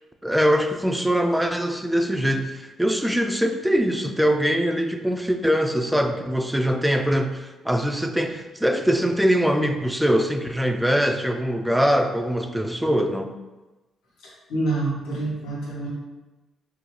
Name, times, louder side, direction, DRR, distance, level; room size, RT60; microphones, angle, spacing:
voice 1, 0.2-13.3, equal, 5° right, 5 dB, 0.3 m, -22 dB
voice 2, 14.2-15.9, right 2 dB, 90° left, -6 dB, 1.2 m, -27 dB
3.8 x 2.3 x 3.1 m, 1.1 s
cardioid pair, 90°, 0 cm